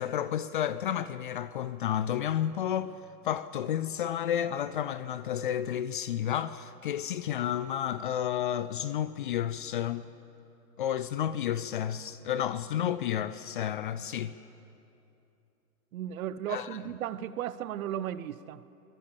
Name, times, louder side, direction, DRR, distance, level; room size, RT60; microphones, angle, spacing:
voice 1, 0.0-2.9 3.2-10.1 10.8-14.3 16.5-16.8, left 10 dB, 35° left, 0.5 m, -31 dB
voice 2, 15.9-18.6, right 11 dB, 55° right, 0.9 m, -35 dB
24.5 x 19.5 x 7.1 m
hypercardioid pair, 130°, 50 cm